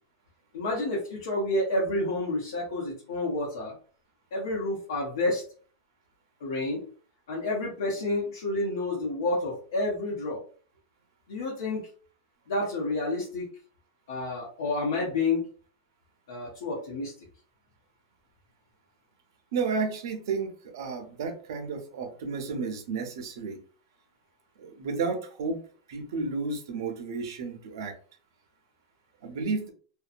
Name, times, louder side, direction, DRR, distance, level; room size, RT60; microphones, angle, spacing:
voice 1, 0.5-3.7 4.3-5.4 6.4-6.9 7.3-10.4 11.3-11.9 12.5-13.5 14.1-15.5 16.3-17.1, left 2 dB, 80° left, -5 dB, 0.9 m, -29 dB
voice 2, 19.5-23.6 24.6-25.6 25.9-27.9 29.2-29.7, right 4 dB, 70° right, 5 dB, 0.7 m, -32 dB
2.7 x 2.2 x 2.5 m, 0.42 s
supercardioid pair, 165°, 2 cm